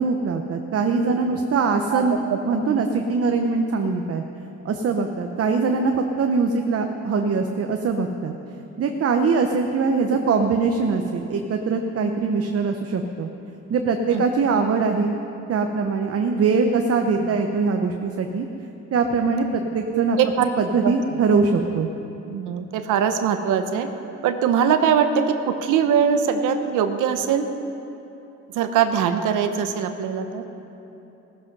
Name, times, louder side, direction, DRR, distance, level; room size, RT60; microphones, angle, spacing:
voice 1, 0.0-2.2 2.4-4.2 4.6-8.3 8.8-13.3 13.7-15.2 15.5-18.5 18.9-21.9, right 4 dB, 50° right, 5 dB, 0.9 m, -22 dB
voice 2, 1.9-2.4 2.7-2.8 14.1-14.2 17.2-17.3 19.9-20.5 20.8-20.9 22.3-23.9 24.2-27.5 28.5-30.4, right 7 dB, 90° right, 8 dB, 0.9 m, -22 dB
15.0 x 13.0 x 5.4 m, 3.0 s
cardioid pair, 90°, 30 cm